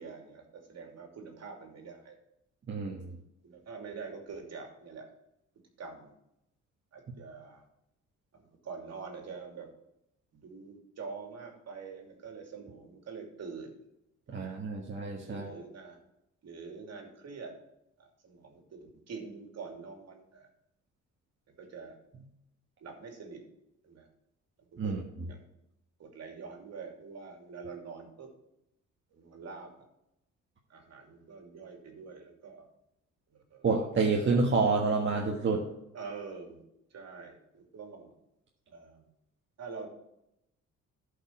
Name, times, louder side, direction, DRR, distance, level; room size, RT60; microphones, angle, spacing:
voice 1, 0.0-2.2 3.0-5.1 5.8-6.1 6.9-7.7 8.3-9.7 10.3-13.7 14.3-14.6 15.2-16.0 16.4-17.5 18.0-20.5 21.5-22.0 22.8-23.4 23.8-24.1 24.7-25.4 26.0-28.3 29.1-29.7 30.7-32.7 33.3-33.7 35.9-36.6 36.9-38.1 38.7-39.1 39.6-39.9, right 5 dB, 55° right, 2 dB, 2.8 m, -45 dB
voice 2, 2.7-3.0 14.3-15.6 24.8-25.0 33.6-35.6, right 4 dB, 40° right, -1 dB, 1.5 m, -28 dB
12.0 x 5.5 x 4.5 m, 0.84 s
cardioid pair, 90°, 30 cm